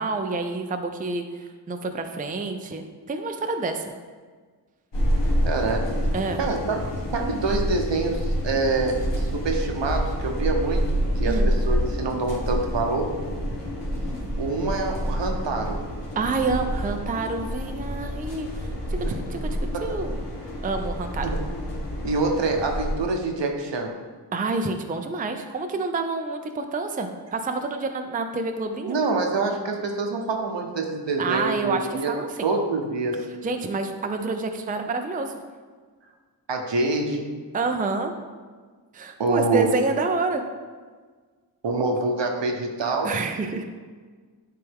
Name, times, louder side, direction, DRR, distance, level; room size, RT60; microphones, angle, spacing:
voice 1, 0.0-3.8 6.1-6.4 11.2-11.5 16.2-19.0 19.3-19.4 19.8-20.2 20.6-21.3 24.3-29.0 31.2-32.5 33.4-35.3 37.5-38.1 38.9-40.4 43.0-43.6, right 3 dB, 20° right, 6 dB, 0.4 m, -28 dB
sound 1, 4.9-22.9, equal, 70° left, 1.5 m, -28 dB
voice 2, 5.4-5.8 6.4-6.8 7.1-10.8 11.2-13.1 14.4-15.8 19.0-19.2 19.7-20.0 21.2-21.4 22.0-23.9 28.9-32.1 32.4-33.2 36.5-37.3 39.2-39.7 41.6-43.1, right 3 dB, 70° right, 2 dB, 0.9 m, -26 dB
10.0 x 3.4 x 3.5 m, 1.5 s
wide cardioid pair, 80°, 44 cm